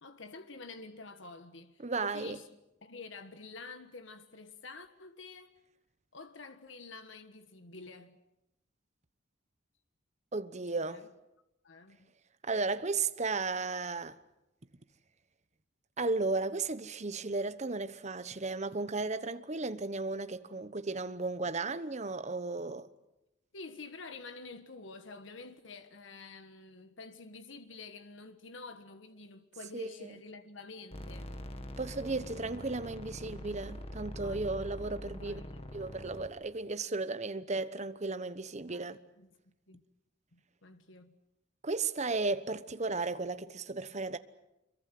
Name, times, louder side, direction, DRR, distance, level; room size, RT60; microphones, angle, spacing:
voice 1, 0.0-2.5 2.8-5.5 6.1-8.2 10.8-11.1 11.6-12.0 23.5-31.3 34.2-34.7 35.1-35.7 38.6-38.8 39.2-39.3 39.7-39.8 40.3-41.2, left 3 dB, 70° left, 1.4 m, -49 dB
voice 2, 1.8-2.4 10.3-11.1 12.4-14.2 16.0-22.9 29.7-30.1 31.8-35.4 35.7-39.0 41.6-44.2, right 3 dB, 35° right, 1.0 m, -34 dB
sound 1, 30.9-36.3, equal, 30° left, 2.0 m, -44 dB
26.5 x 23.0 x 7.7 m
head